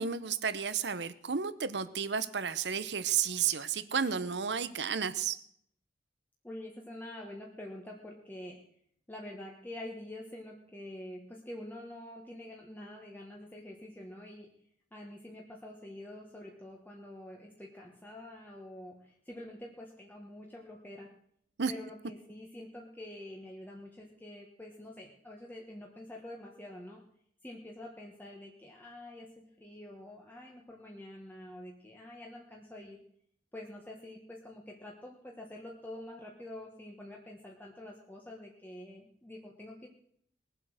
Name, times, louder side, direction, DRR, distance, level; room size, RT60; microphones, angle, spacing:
voice 1, 0.0-5.4 21.6-21.7, right 7 dB, 75° right, 14 dB, 0.8 m, -32 dB
voice 2, 6.4-8.6 9.1-14.5 14.9-21.1 21.7-27.0 27.4-33.0 33.5-39.9, left 1 dB, 10° left, -1 dB, 1.4 m, -47 dB
20.5 x 7.7 x 6.4 m, 0.68 s
head